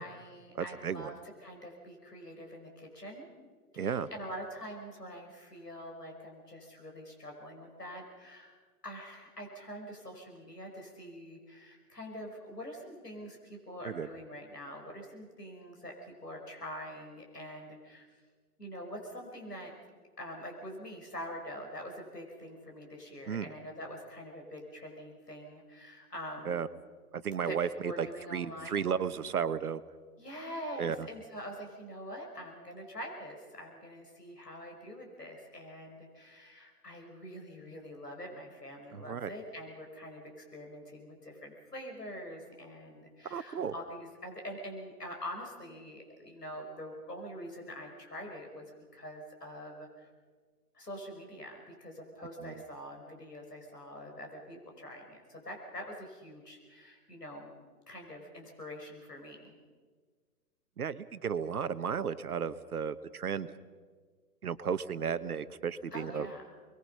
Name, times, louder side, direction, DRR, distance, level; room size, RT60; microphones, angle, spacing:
voice 1, 0.0-3.3 3.7-8.6 8.8-18.0 18.6-19.7 20.2-26.6 27.5-28.9 30.2-48.7 48.9-50.1 50.7-57.5 57.9-59.6 65.9-66.4, equal, 85° left, 1 dB, 5.4 m, -45 dB
voice 2, 0.5-1.1 3.8-4.1 13.8-14.1 23.3-23.5 26.5-26.7 27.1-29.8 30.8-31.1 38.9-39.3 43.3-43.7 52.4-52.5 60.8-63.5 64.4-66.3, right 7 dB, 70° right, 13 dB, 1.2 m, -34 dB
29.5 x 21.5 x 5.7 m, 1.5 s
figure-of-eight pair, 120°, 46 cm